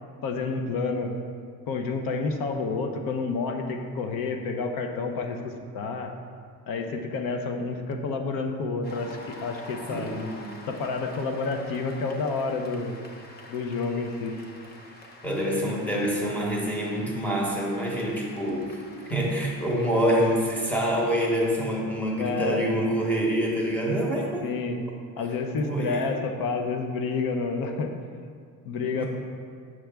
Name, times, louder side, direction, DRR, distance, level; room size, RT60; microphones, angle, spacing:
voice 1, 0.2-1.2 1.7-6.1 6.7-10.1 10.7-12.9 13.5-14.3 22.2-22.6 24.4-24.8 25.2-27.9 28.7-29.0, left 4 dB, 70° left, 5 dB, 0.8 m, -29 dB
Cheering / Applause, 8.8-21.3, left 2 dB, 25° left, 0.7 m, -47 dB
voice 2, 9.9-10.5 15.2-18.8 19.1-24.4 25.7-26.1 29.0-29.1, equal, 5° left, -3 dB, 1.0 m, -26 dB
7.5 x 6.2 x 3.5 m, 2.1 s
cardioid pair, 165°, 36 cm